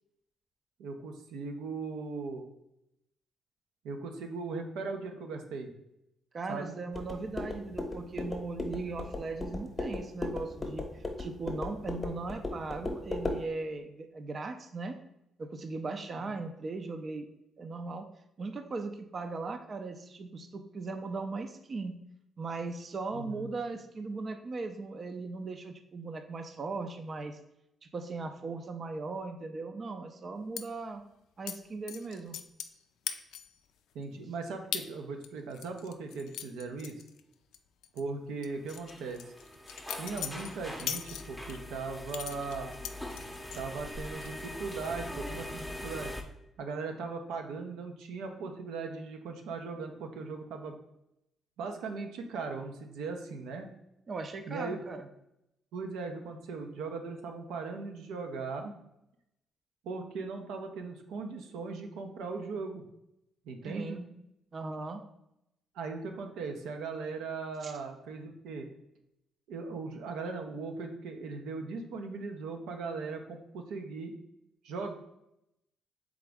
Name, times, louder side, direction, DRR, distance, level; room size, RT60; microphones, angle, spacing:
voice 1, 0.8-2.5 3.8-5.7 6.5-6.8 16.2-16.3 23.1-23.5 33.9-36.9 37.9-39.2 39.9-42.7 43.5-46.1 46.6-50.8 51.6-53.7 54.5-54.8 55.7-58.8 59.8-62.8 63.5-64.0 65.7-68.7 69.5-74.1 74.6-74.9, right 4 dB, 90° right, 4 dB, 0.6 m, -38 dB
voice 2, 6.3-14.9 15.4-17.3 17.6-18.1 18.4-21.9 22.4-27.4 27.8-31.0 31.4-32.4 54.1-55.1 63.6-64.1 64.5-65.0 67.6-67.7, right 3 dB, 40° right, 7 dB, 0.4 m, -38 dB
sound 1, 6.9-13.4, left 2 dB, 30° left, 0.8 m, -37 dB
sound 2, 30.6-30.7 31.5-31.6 31.9-32.8 33.1-33.6 34.0-34.1 34.7-34.9 35.2-37.6 37.8-38.0 38.4-41.6 42.1-43.6 44.0-44.5 44.7-45.1, left 9 dB, 85° left, 0.3 m, -39 dB
sound 3, 38.7-46.2, left 1 dB, ahead, 0.6 m, -42 dB
3.9 x 3.6 x 3.4 m, 0.84 s
cardioid pair, 90°, 0 cm